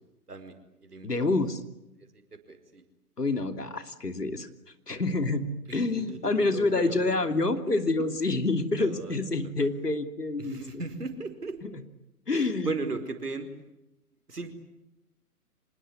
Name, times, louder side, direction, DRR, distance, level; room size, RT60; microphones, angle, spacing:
voice 1, 0.3-1.1 2.3-2.8 5.7-7.2 7.8-7.9 8.8-9.5 10.4-11.6 12.3-13.5 14.3-14.5, right 3 dB, 75° right, 8 dB, 4.9 m, -37 dB
voice 2, 1.0-1.6 3.2-4.5 4.9-5.5 5.7-10.8 11.6-11.8 12.3-12.7, left 2 dB, 80° left, 9 dB, 3.1 m, -27 dB
26.0 x 20.5 x 9.7 m, 0.90 s
figure-of-eight pair, 130°, 46 cm